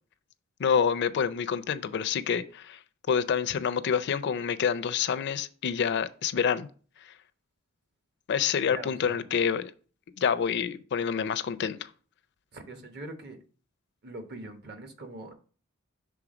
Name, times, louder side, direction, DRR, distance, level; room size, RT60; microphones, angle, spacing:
voice 1, 0.6-2.8 3.1-6.7 8.3-9.7 10.2-11.9, left 7 dB, 55° left, 0.4 m, -27 dB
voice 2, 8.7-9.3 12.5-13.4 14.0-15.3, right 2 dB, 55° right, 1.0 m, -42 dB
5.9 x 3.5 x 5.0 m
head